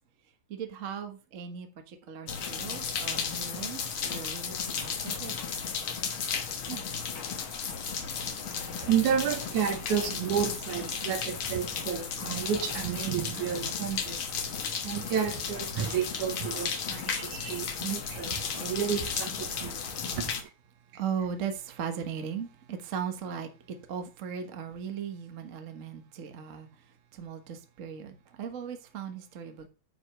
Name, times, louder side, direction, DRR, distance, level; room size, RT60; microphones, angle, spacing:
voice 1, 0.5-5.4 6.7-6.8 20.9-26.7 27.1-29.7, right 7 dB, 50° right, 0.9 m, -38 dB
sound 1, 2.3-20.4, left 6 dB, 55° left, 1.7 m, -34 dB
voice 2, 7.3-20.5, right 8 dB, 80° right, 3.0 m, -32 dB
8.9 x 5.1 x 5.9 m
omnidirectional pair, 3.4 m